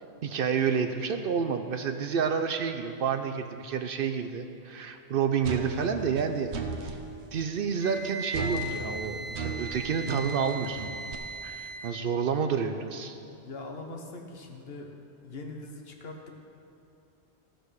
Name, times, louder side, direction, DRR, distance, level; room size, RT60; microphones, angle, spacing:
voice 1, 0.2-6.5 6.8-7.0 7.3-10.9 11.4-13.2, right 6 dB, 65° right, 7 dB, 0.7 m, -29 dB
sound 1, 5.4-7.0 8.3-11.1, right 4 dB, 80° right, 1.1 m, -35 dB
Wind instrument woodwind instrument, 7.8-12.0, right 1 dB, 25° right, 1.2 m, -38 dB
voice 2, 13.4-14.9 15.2-16.4, left 2 dB, 65° left, 2 dB, 1.3 m, -41 dB
14.5 x 5.2 x 6.4 m, 2.7 s
omnidirectional pair, 1.1 m